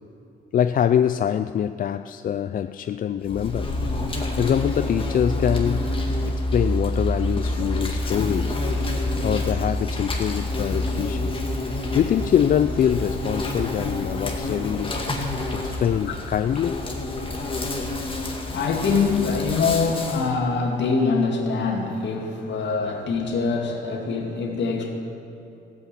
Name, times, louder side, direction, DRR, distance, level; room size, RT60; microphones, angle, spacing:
voice 1, 0.5-3.7 4.4-5.9 6.5-8.6 9.2-11.3 11.9-15.0 15.5-16.8, left 9 dB, 45° left, 10 dB, 0.4 m, -24 dB
Insect, 3.2-20.3, left 1 dB, 25° left, 2.2 m, -27 dB
voice 2, 15.4-16.2 17.2-24.9, left 4 dB, 65° left, 1 dB, 2.5 m, -25 dB
15.5 x 8.4 x 8.4 m, 2.9 s
cardioid pair, 90°, 20 cm